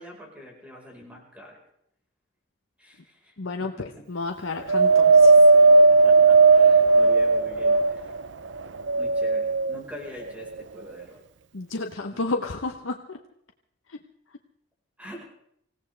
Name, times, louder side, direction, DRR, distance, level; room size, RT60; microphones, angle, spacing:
voice 1, 0.0-1.6 2.8-3.3 3.6-3.7 5.9-8.1 8.9-11.2 15.0-15.3, equal, 5° right, -1 dB, 4.5 m, -44 dB
voice 2, 3.4-3.7 4.1-5.4 11.5-13.2 13.9-14.0, left 3 dB, 85° left, 4 dB, 1.0 m, -31 dB
Wind, 4.7-8.2 8.8-9.8 10.6-10.7, right 3 dB, 65° right, 0.6 m, -16 dB
25.5 x 17.0 x 3.3 m, 0.72 s
head